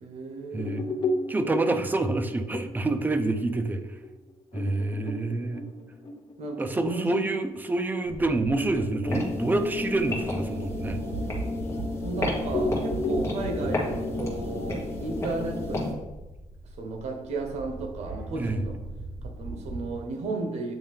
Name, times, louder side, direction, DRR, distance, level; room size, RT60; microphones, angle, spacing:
voice 1, 0.0-1.0 6.4-7.2 12.0-16.0 16.8-18.8 19.2-20.8, right 3 dB, 75° right, 4 dB, 1.1 m, -34 dB
voice 2, 0.5-0.9 1.3-3.8 4.5-5.6 6.6-11.0 18.4-18.6, right 2 dB, 15° right, 8 dB, 0.5 m, -27 dB
sound 1, 0.6-7.6 8.1-8.2 8.5-12.1 12.5-15.6, left 2 dB, 45° left, 0.8 m, -35 dB
sound 2, 8.0-19.9, right 2 dB, 55° right, 1.7 m, -39 dB
sound 3, 9.1-15.9, left 2 dB, 25° left, 1.6 m, -32 dB
8.7 x 3.2 x 3.5 m, 1.1 s
cardioid pair, 120°, 11 cm